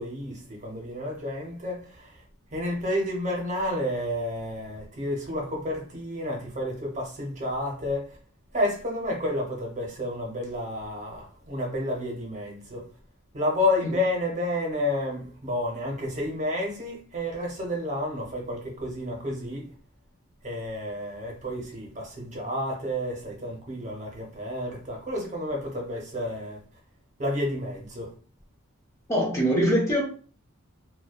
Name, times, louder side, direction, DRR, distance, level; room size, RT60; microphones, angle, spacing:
voice 1, 0.0-2.2 2.5-8.2 8.5-12.9 13.3-19.7 20.4-26.6 27.2-28.1, left 1 dB, 35° right, 0.7 m, -30 dB
voice 2, 29.1-30.0, equal, 15° left, 0.5 m, -23 dB
2.6 x 2.1 x 2.3 m
head